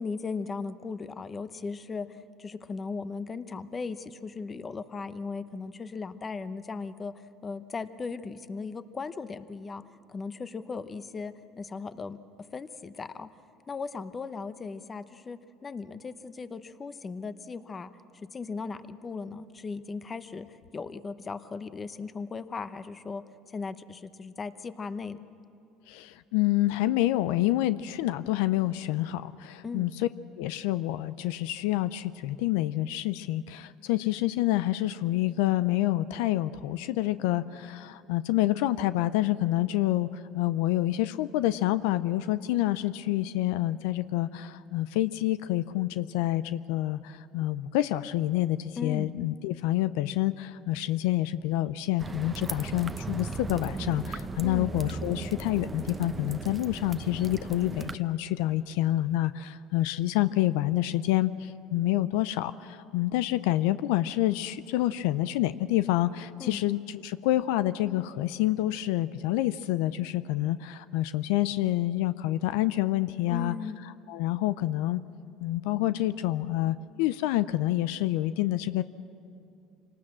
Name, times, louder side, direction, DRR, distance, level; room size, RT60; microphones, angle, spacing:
voice 1, 0.0-7.1 7.4-9.8 10.1-12.2 12.5-13.3 13.7-17.9 18.3-25.3 29.6-29.9 48.8-49.1 54.4-54.7 66.4-66.6 73.3-73.8, left 4 dB, 25° left, 12 dB, 0.9 m, -37 dB
voice 2, 25.9-30.1 30.4-73.6 74.1-75.0 75.4-78.8, left 15 dB, 85° left, 14 dB, 0.5 m, -28 dB
sound 1, 52.0-58.0, right 4 dB, 20° right, 0.7 m, -37 dB
26.0 x 19.0 x 7.6 m, 2.5 s
supercardioid pair, 105°, 0 cm